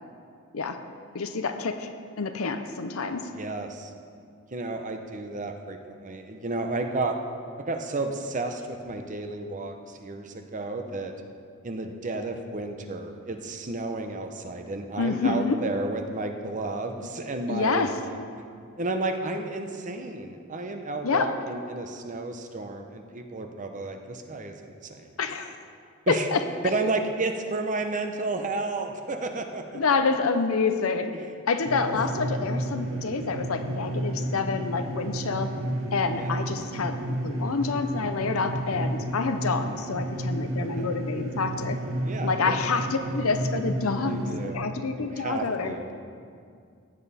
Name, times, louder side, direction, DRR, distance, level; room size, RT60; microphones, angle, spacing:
voice 1, 1.1-1.9 2.2-3.3 15.0-15.6 17.5-18.0 21.0-21.4 25.2-25.6 26.1-26.4 29.7-31.1 31.5-35.5 35.9-41.8 42.2-45.7, left 4 dB, 85° left, 8 dB, 0.7 m, -27 dB
voice 2, 3.3-3.9 4.5-7.2 7.6-11.1 11.6-17.9 18.8-25.1 26.1-26.3 26.6-29.8 31.1-31.3 32.8-33.0 36.2-36.4 40.6-40.9 42.0-42.6 44.1-46.0, right 2 dB, 35° right, 6 dB, 0.8 m, -32 dB
sound 1, 31.6-44.5, right 1 dB, 65° right, 1.1 m, -32 dB
15.5 x 9.0 x 4.2 m, 2.3 s
head